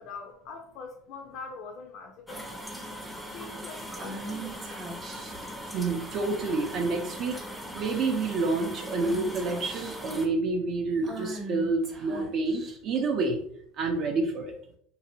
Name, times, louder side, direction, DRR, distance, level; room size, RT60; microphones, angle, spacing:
voice 1, 0.0-2.7 3.3-4.9, left 4 dB, 60° left, 2 dB, 0.4 m, -43 dB
sound 1, 2.3-10.3, equal, ahead, 0.5 m, -40 dB
Female speech woman speaking / Whispering, 4.0-5.5 6.5-6.9 7.3-7.5 7.8-8.3 9.0-10.1 11.0-13.0, right 2 dB, 35° right, 0.9 m, -41 dB
voice 2, 5.6-13.4 13.8-14.5, right 3 dB, 50° right, 2 dB, 0.4 m, -28 dB
2.6 x 2.0 x 2.6 m, 0.66 s
supercardioid pair, 95°, 0 cm